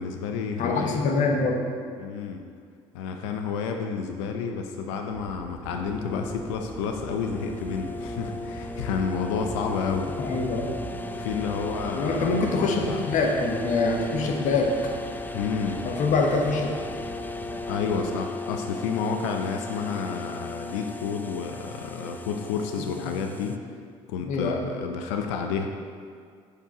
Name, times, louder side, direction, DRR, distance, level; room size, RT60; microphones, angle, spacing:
voice 1, 0.0-1.1 2.0-2.4 2.9-10.3 11.1-13.0 15.3-15.8 17.7-23.6 24.1-25.7, left 6 dB, 75° left, 4 dB, 0.5 m, -30 dB
voice 2, 0.6-1.6 10.2-10.7 11.9-14.9 15.8-16.8 22.8-23.2 24.2-24.7, left 3 dB, 55° left, 1 dB, 1.0 m, -25 dB
sound 1, 5.1-18.2, right 5 dB, 40° right, 0.7 m, -42 dB
sound 2, 5.7-23.6, left 3 dB, 10° left, 0.5 m, -37 dB
7.0 x 4.8 x 4.6 m, 2.1 s
hypercardioid pair, 60°, 15 cm